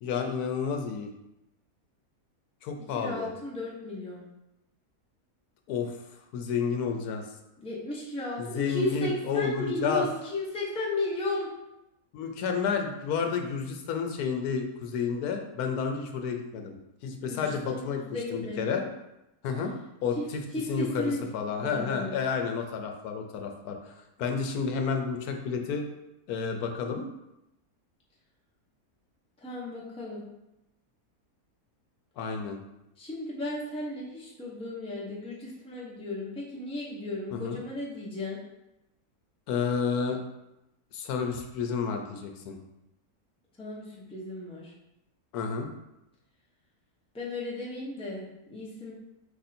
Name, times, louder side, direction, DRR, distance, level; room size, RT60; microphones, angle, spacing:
voice 1, 0.0-1.1 2.6-3.3 5.7-7.3 8.4-10.1 12.1-16.8 17.0-18.8 19.4-19.7 20.0-20.4 20.7-25.8 26.3-27.1 32.2-32.6 37.3-37.6 39.5-40.2 40.9-42.6 45.3-45.7, left 6 dB, 80° left, 4 dB, 1.1 m, -31 dB
voice 2, 2.9-4.2 7.6-11.5 17.3-18.7 20.2-20.3 20.5-21.2 21.6-22.2 29.4-30.3 33.0-38.4 43.6-44.7 47.1-48.9, left 2 dB, 5° left, -5 dB, 0.7 m, -35 dB
4.8 x 2.6 x 4.2 m, 0.90 s
omnidirectional pair, 1.6 m